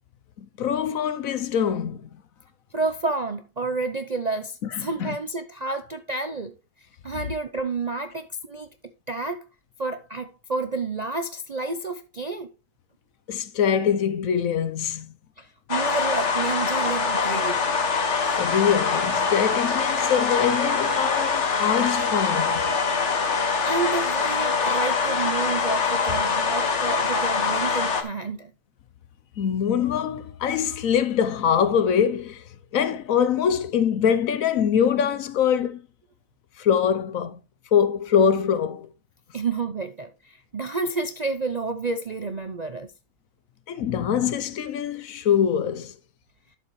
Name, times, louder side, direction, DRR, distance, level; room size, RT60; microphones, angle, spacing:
voice 1, 0.4-2.1 4.7-5.2 13.3-15.1 18.4-22.7 29.4-32.4 32.7-35.8 36.6-37.4 37.7-38.9 43.7-45.9, left 8 dB, 65° left, 1.1 m, -23 dB
voice 2, 2.7-6.5 7.0-8.7 9.1-9.4 9.8-12.5 15.4-17.6 23.6-28.5 39.3-42.9, right 3 dB, 45° right, 0.5 m, -30 dB
sound 1, 15.7-28.0, left 5 dB, 50° left, 1.5 m, -24 dB
11.5 x 7.0 x 3.1 m
omnidirectional pair, 1.6 m